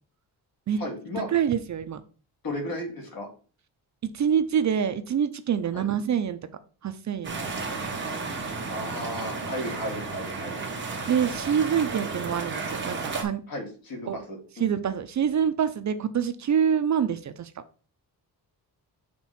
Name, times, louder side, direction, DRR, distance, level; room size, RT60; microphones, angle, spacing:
voice 1, 0.8-1.3 2.4-3.3 5.7-5.9 8.7-10.6 13.5-14.7, left 1 dB, 60° left, 1 dB, 2.3 m, -34 dB
voice 2, 1.3-2.0 4.0-6.4 6.8-7.4 11.1-13.4 14.1-14.2 14.6-17.5, right 8 dB, 45° right, 10 dB, 0.5 m, -26 dB
sound 1, 7.2-13.2, right 4 dB, 30° right, 1.3 m, -33 dB
6.1 x 3.6 x 5.7 m, 0.39 s
wide cardioid pair, 165°, 40 cm